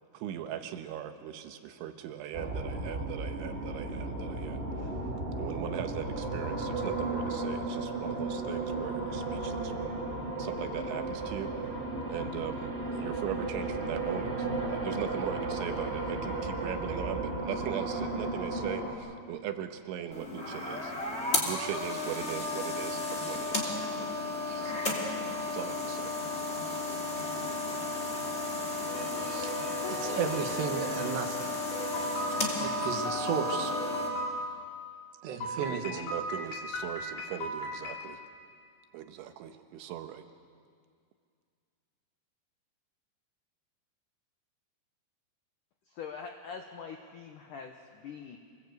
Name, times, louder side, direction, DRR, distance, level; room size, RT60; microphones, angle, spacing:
voice 1, 0.1-5.0 5.4-9.9 10.4-11.5 12.1-20.9 21.4-24.2 24.4-24.8 25.3-26.1 35.5-38.2 38.9-40.2, right 10 dB, 85° right, 7 dB, 3.6 m, -39 dB
sound 1, 2.3-18.9, right 2 dB, 20° right, 2.1 m, -34 dB
sound 2, 20.1-34.1, left 2 dB, 15° left, 2.5 m, -34 dB
sound 3, 28.9-31.2 31.7-34.4 35.4-38.1, equal, 55° left, 4.8 m, -36 dB
voice 2, 29.1-31.5 32.6-33.8 35.2-36.0, right 6 dB, 70° right, 5 dB, 3.6 m, -35 dB
voice 3, 45.9-48.4, left 6 dB, 75° left, 4 dB, 1.9 m, -43 dB
26.0 x 19.5 x 8.2 m, 2.2 s
omnidirectional pair, 5.3 m